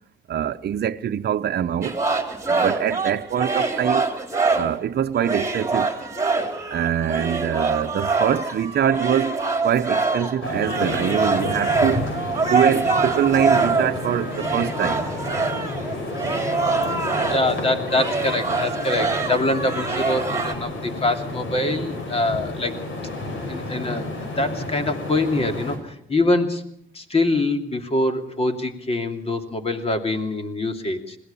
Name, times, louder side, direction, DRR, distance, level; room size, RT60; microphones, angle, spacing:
voice 1, 0.3-2.0 2.5-4.1 4.5-5.9 6.7-9.4 9.6-12.1 12.4-15.1, right 9 dB, 55° right, 0.9 m, -24 dB
sound 1, 1.8-4.8 5.2-17.6 17.9-20.5, right 4 dB, 15° right, 3.4 m, -24 dB
sound 2, 10.4-25.8, left 2 dB, 80° left, 5.7 m, -31 dB
voice 2, 17.2-22.7 23.5-25.8 26.1-26.6 26.9-31.2, left 2 dB, 30° left, 2.9 m, -24 dB
21.5 x 17.0 x 7.0 m
cardioid pair, 90°, 20 cm